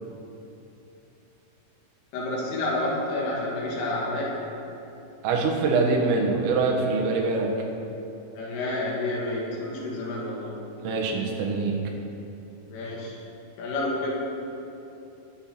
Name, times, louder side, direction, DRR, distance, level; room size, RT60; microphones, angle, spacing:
voice 1, 2.1-4.4 8.4-10.6 12.7-13.2 13.6-14.1, left 2 dB, 80° left, -4 dB, 4.9 m, -29 dB
voice 2, 5.2-7.5 10.8-11.8, right 3 dB, 85° right, 0 dB, 4.1 m, -24 dB
21.5 x 8.1 x 4.4 m, 2.9 s
omnidirectional pair, 5.8 m